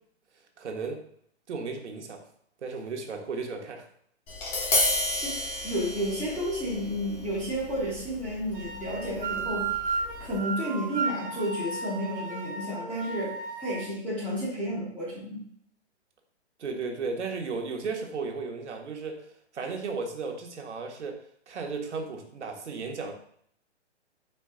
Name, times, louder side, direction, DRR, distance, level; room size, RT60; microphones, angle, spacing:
voice 1, 0.6-1.0 1.5-2.2 2.6-3.8 16.6-19.3 19.5-21.2 21.5-23.1, right 4 dB, 85° right, 3 dB, 0.9 m, -34 dB
Tap, 4.3-10.4, left 1 dB, 25° left, 1.0 m, -32 dB
voice 2, 5.2-15.4, equal, 5° left, -8 dB, 0.7 m, -32 dB
sound 1, 8.5-13.8, right 4 dB, 50° right, 0.6 m, -34 dB
4.4 x 2.3 x 3.6 m, 0.65 s
hypercardioid pair, 150°, 34 cm